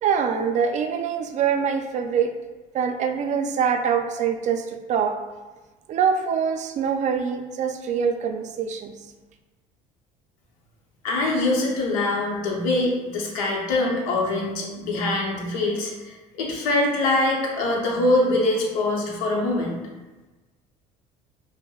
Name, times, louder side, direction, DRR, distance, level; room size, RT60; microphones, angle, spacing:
voice 1, 0.0-2.3 2.7-5.2 5.9-8.9, right 7 dB, 45° right, 5 dB, 0.4 m, -24 dB
voice 2, 11.0-19.8, left 2 dB, 85° left, -1 dB, 0.8 m, -23 dB
5.3 x 2.0 x 2.3 m, 1.2 s
supercardioid pair, 80°, 17 cm